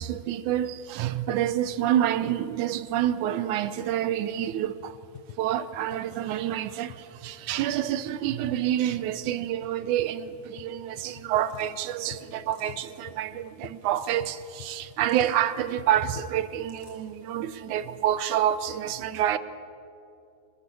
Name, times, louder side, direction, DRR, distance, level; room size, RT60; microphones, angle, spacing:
voice 1, 0.0-5.0 5.4-19.4, right 11 dB, 75° right, 2.0 m, -28 dB
sound 1, 4.7-16.4, left 11 dB, 75° left, 2.3 m, -49 dB
sound 2, 11.3-11.8 12.3-12.9 13.7-14.2 14.9-15.4 16.4-17.0, left 2 dB, 45° left, 6.1 m, -57 dB
27.5 x 21.0 x 7.0 m
omnidirectional pair, 3.9 m